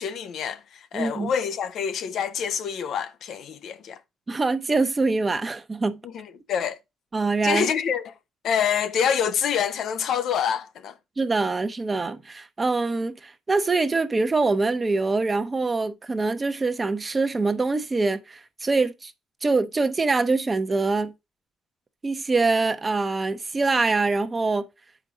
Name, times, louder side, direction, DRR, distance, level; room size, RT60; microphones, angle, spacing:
voice 1, 0.0-4.0 6.0-6.8 7.4-8.1 8.4-10.9, left 8 dB, 70° left, 0.7 m, -26 dB
voice 2, 0.9-1.3 4.3-6.0 7.1-7.7 11.2-19.1 19.4-21.1 22.0-24.7, right 3 dB, 25° right, 0.8 m, -24 dB
7.2 x 5.2 x 3.9 m
cardioid pair, 90°, 0 cm